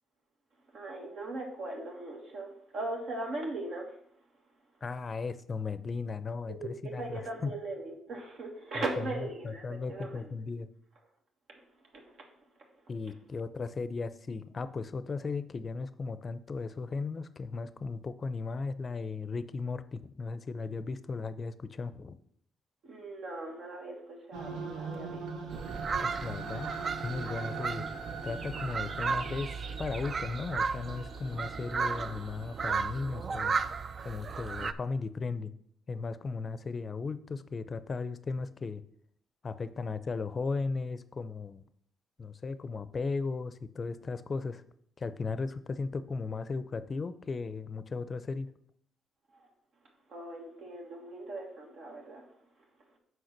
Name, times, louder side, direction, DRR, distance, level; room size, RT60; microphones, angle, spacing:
voice 1, 0.7-3.9 6.5-10.3 12.0-12.1 22.8-25.2 49.3-49.5 50.1-52.2, right 2 dB, 70° right, 0 dB, 1.6 m, -39 dB
voice 2, 4.8-7.5 8.7-10.7 12.9-22.2 26.0-26.7 27.0-27.9 28.2-29.5 29.8-33.6 34.0-35.5 35.9-38.8 39.4-41.6 42.2-44.6 45.0-48.5, left 4 dB, 40° left, 14 dB, 0.5 m, -36 dB
sound 1, 24.3-34.5, right 4 dB, 85° right, 1.1 m, -43 dB
sound 2, 25.5-34.7, right 5 dB, 45° right, 0.4 m, -35 dB
6.5 x 4.7 x 5.9 m, 0.68 s
cardioid pair, 90°, 0 cm